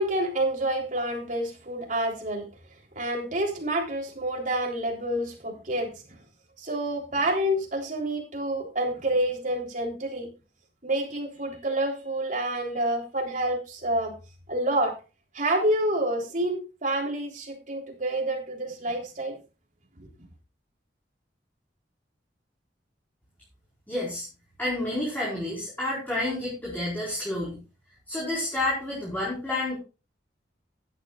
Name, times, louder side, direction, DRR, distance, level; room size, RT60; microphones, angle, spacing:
voice 1, 0.0-2.5 3.0-5.9 6.6-10.3 10.8-14.1 14.5-14.9 15.3-19.4, right 1 dB, 45° right, 1 dB, 3.5 m, -28 dB
voice 2, 23.9-24.3 24.6-27.6 28.1-29.8, left 1 dB, 10° left, -6 dB, 4.6 m, -29 dB
15.0 x 11.0 x 2.4 m, 0.31 s
head